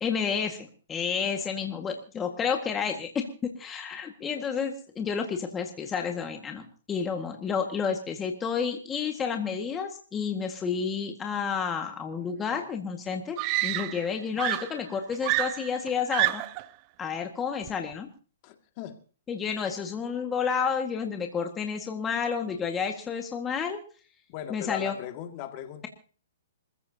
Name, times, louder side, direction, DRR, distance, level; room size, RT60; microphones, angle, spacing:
voice 1, 0.0-16.4 17.0-18.1 19.3-23.8 24.5-24.9, left 6 dB, 15° left, 1.8 m, -30 dB
Screaming, 12.5-12.6 13.4-14.1 14.4-16.7 17.7-17.9, right 19 dB, 35° right, 0.6 m, -29 dB
voice 2, 18.4-19.0 24.3-25.9, left 11 dB, 35° left, 2.2 m, -38 dB
26.5 x 15.0 x 2.8 m
hypercardioid pair, 145°, 0 cm